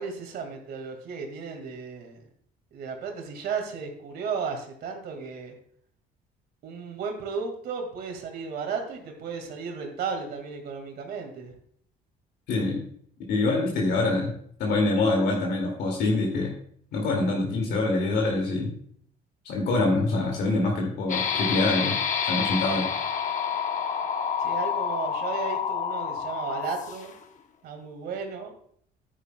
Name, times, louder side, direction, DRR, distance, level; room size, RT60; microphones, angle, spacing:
voice 1, 0.0-2.2 2.7-5.5 6.6-11.5 24.4-27.1 27.6-28.5, right 5 dB, 65° right, 4 dB, 2.0 m, -34 dB
voice 2, 12.5-12.8 13.3-14.3 14.6-16.5 16.9-18.7 19.4-22.9, left 2 dB, 75° left, 0 dB, 2.2 m, -25 dB
sound 1, 21.1-27.2, left 7 dB, 45° left, 0.9 m, -28 dB
10.0 x 9.9 x 2.2 m, 0.63 s
cardioid pair, 110°, 17 cm